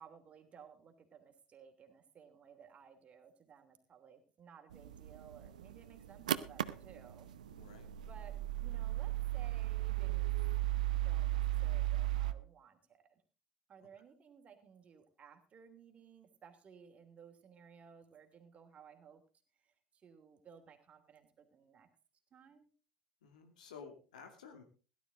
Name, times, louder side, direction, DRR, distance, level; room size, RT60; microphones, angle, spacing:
voice 1, 0.0-7.3 7.7-10.3 11.0-13.2 13.7-19.2 19.6-21.9 22.3-22.7, right 7 dB, 30° right, 5 dB, 3.0 m, -58 dB
sound 1, 4.7-12.3, right 15 dB, 75° right, 0.7 m, -36 dB
voice 2, 7.5-7.9 23.2-24.6, left 6 dB, 70° left, 4 dB, 2.3 m, -53 dB
17.0 x 12.0 x 3.8 m, 0.35 s
figure-of-eight pair, 75°, 4 cm